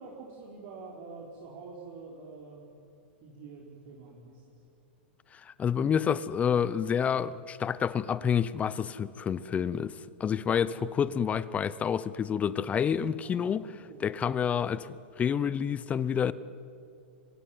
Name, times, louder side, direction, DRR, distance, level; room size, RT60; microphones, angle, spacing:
voice 1, 0.0-2.7 3.2-4.5 10.6-10.7 13.2-13.5 13.9-14.0, right 4 dB, 55° right, 5.2 m, -46 dB
voice 2, 5.3-13.7 14.0-16.3, left 7 dB, 25° left, 0.8 m, -29 dB
24.0 x 23.5 x 9.4 m
hypercardioid pair, 110°, 6 cm